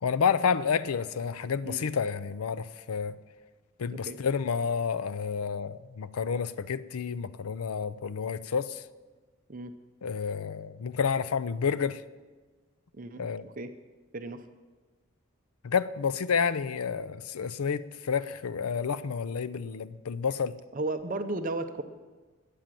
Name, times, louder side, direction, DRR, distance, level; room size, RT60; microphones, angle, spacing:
voice 1, 0.0-3.1 3.8-8.8 10.0-12.0 13.2-13.4 15.6-20.6, left 6 dB, 90° left, 16 dB, 0.5 m, -30 dB
voice 2, 12.9-13.7 14.1-14.4 20.7-21.8, right 2 dB, 40° right, 8 dB, 0.6 m, -35 dB
13.0 x 8.6 x 7.5 m, 1.3 s
head